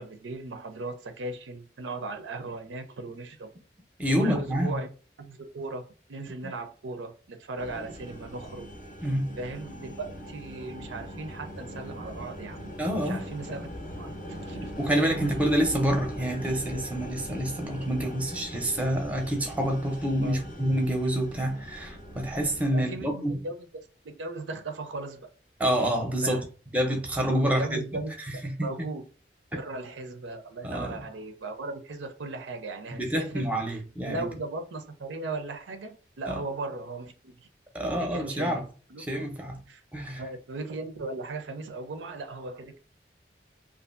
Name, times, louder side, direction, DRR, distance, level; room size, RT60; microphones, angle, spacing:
voice 1, 0.0-3.5 4.2-4.9 5.2-8.7 9.4-12.7 13.0-13.7 14.0-15.3 20.2-20.5 22.7-23.6 24.0-25.3 26.2-26.5 27.3-28.1 28.6-29.0 29.5-33.5 34.1-37.5 37.8-38.6 38.9-39.3 39.7-39.8 40.2-42.8, right 2 dB, 85° right, 0.5 m, -37 dB
voice 2, 4.0-4.8 9.0-9.4 12.8-13.3 14.8-23.4 25.6-26.5 26.7-27.8 28.4-28.7 30.6-31.0 33.0-34.2 36.3-36.4 37.7-38.6 39.1-39.6 39.9-40.2, equal, 10° right, 0.5 m, -27 dB
sound 1, 7.6-22.7, equal, 45° left, 0.5 m, -40 dB
2.6 x 2.4 x 2.4 m
head